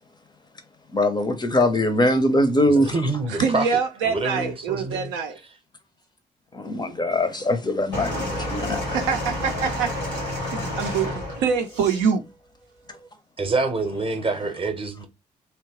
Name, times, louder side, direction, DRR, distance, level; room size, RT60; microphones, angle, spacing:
voice 1, 0.9-2.9 6.5-8.9, left 1 dB, 20° left, 0.6 m, -22 dB
voice 2, 2.7-3.7 4.0-5.1 13.4-15.1, right 3 dB, 25° right, 0.8 m, -26 dB
voice 3, 3.3-5.4 8.9-12.2, right 6 dB, 65° right, 0.5 m, -25 dB
sound 1, 7.9-12.1 12.9-13.1, left 1 dB, 90° left, 0.8 m, -30 dB
2.9 x 2.2 x 2.9 m
figure-of-eight pair, 40°, 21 cm